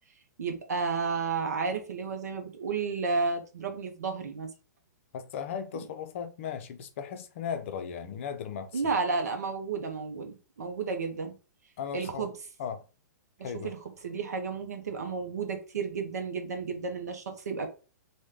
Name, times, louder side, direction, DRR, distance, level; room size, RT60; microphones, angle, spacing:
voice 1, 0.4-4.5 5.7-5.8 8.7-11.3 11.9-12.3 13.4-13.8 14.0-17.7, right 4 dB, 65° right, 0.6 m, -32 dB
voice 2, 5.1-9.0 11.8-12.3 12.6-12.8 13.4-13.7, left 7 dB, 45° left, 0.5 m, -37 dB
3.1 x 2.2 x 3.5 m
figure-of-eight pair, 110°, 10 cm